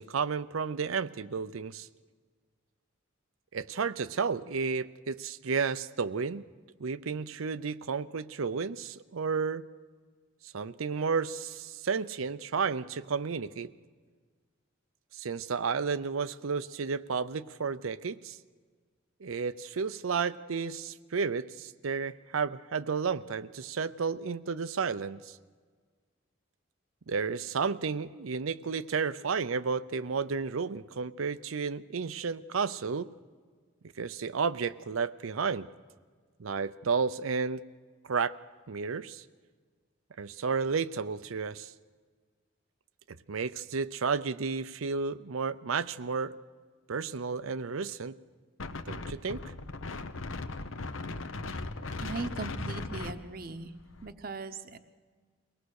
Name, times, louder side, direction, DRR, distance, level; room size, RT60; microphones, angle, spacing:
voice 1, 0.0-1.9 3.5-6.5 6.8-9.7 10.5-13.7 15.1-18.4 19.2-25.4 27.1-33.1 34.0-35.7 36.4-37.6 38.0-38.3 38.7-39.2 40.2-41.7 43.3-46.3 46.9-48.2 48.9-49.5, right 5 dB, 85° right, 15 dB, 0.6 m, -32 dB
Wind, 48.6-54.1, left 3 dB, 80° left, 0.9 m, -38 dB
voice 2, 52.0-53.7 54.0-54.8, right 3 dB, 45° right, 10 dB, 0.8 m, -38 dB
23.0 x 18.5 x 6.5 m, 1.6 s
head